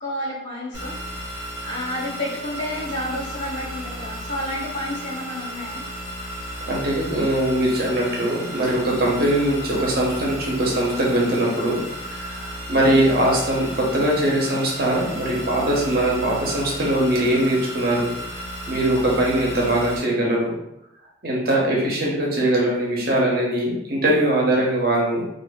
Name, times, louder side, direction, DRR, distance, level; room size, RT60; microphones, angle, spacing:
voice 1, 0.0-0.9 1.6-5.8 12.8-13.0, left 1 dB, 75° left, -7 dB, 1.2 m, -30 dB
sound 1, 0.7-20.0, equal, 15° right, 0.6 m, -34 dB
voice 2, 6.6-11.8 12.1-18.1 18.7-20.5 21.2-25.2, right 1 dB, 50° right, -3 dB, 0.7 m, -21 dB
2.5 x 2.4 x 2.3 m, 0.80 s
head